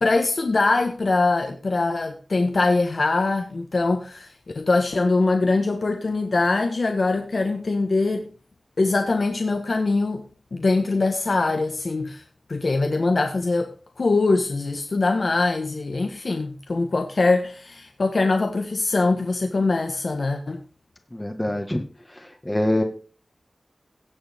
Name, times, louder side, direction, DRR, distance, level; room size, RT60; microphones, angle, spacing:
voice 1, 0.0-8.2 8.8-10.2 10.5-12.2 12.5-20.6, left 3 dB, 65° left, 1.5 m, -22 dB
voice 2, 21.1-21.8 22.1-22.8, left 1 dB, 15° left, 1.7 m, -25 dB
17.5 x 7.0 x 3.6 m
wide cardioid pair, 80°, 0 cm